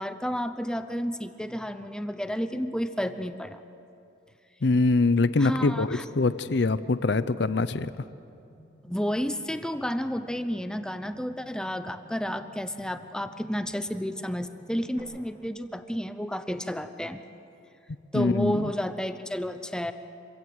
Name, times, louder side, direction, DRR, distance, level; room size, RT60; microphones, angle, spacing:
voice 1, 0.0-3.6 5.4-6.0 8.8-17.2 18.1-19.9, equal, 5° left, 10 dB, 0.7 m, -31 dB
voice 2, 4.6-7.9 18.1-18.7, left 3 dB, 65° left, 14 dB, 0.6 m, -24 dB
sound 1, 5.0-15.0, equal, 35° right, 5.1 m, -55 dB
26.0 x 16.0 x 7.9 m, 2.7 s
head